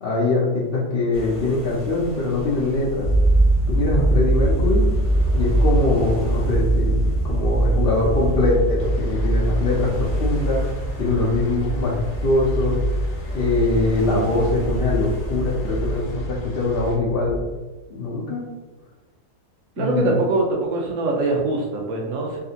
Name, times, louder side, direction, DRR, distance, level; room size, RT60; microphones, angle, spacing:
voice 1, 0.0-3.1 3.7-4.8 5.3-10.6 11.0-12.8 13.3-17.4 17.9-18.4 19.8-20.2, left 2 dB, 85° left, -6 dB, 0.5 m, -22 dB
sound 1, 1.1-16.1, equal, 35° left, 0.5 m, -36 dB
sound 2, 3.0-17.5, right 1 dB, 40° right, 0.5 m, -22 dB
sound 3, 8.8-17.0, left 1 dB, 65° left, 1.0 m, -39 dB
voice 2, 19.8-22.4, right 3 dB, 70° right, -1 dB, 1.0 m, -23 dB
3.5 x 2.4 x 2.7 m, 1.3 s
omnidirectional pair, 1.7 m